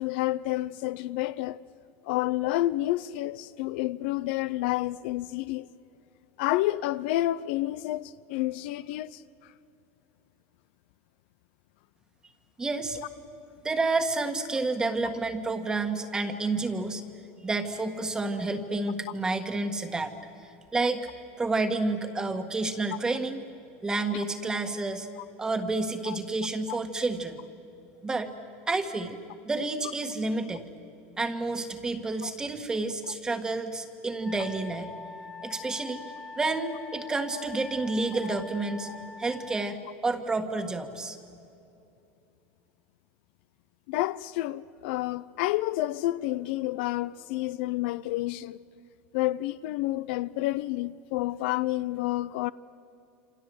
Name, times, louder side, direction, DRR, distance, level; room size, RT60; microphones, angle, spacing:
voice 1, 0.0-1.6 2.0-5.7 6.4-9.2 26.1-26.2 26.7-26.8 32.2-32.3 38.2-38.4 38.9-39.0 43.9-48.6 49.1-52.5, left 16 dB, 65° left, 0.6 m, -29 dB
voice 2, 12.6-13.0 13.6-17.0 17.4-20.1 20.4-21.1 21.4-23.5 23.8-25.1 25.4-27.4 28.0-28.3 28.7-29.2 29.4-30.7 31.2-34.9 35.4-36.0 36.3-38.9 39.2-41.2, right 3 dB, 10° right, 1.6 m, -30 dB
Wind instrument woodwind instrument, 34.2-39.7, left 3 dB, 10° left, 0.7 m, -44 dB
28.0 x 27.0 x 7.8 m
supercardioid pair, 160°, 6 cm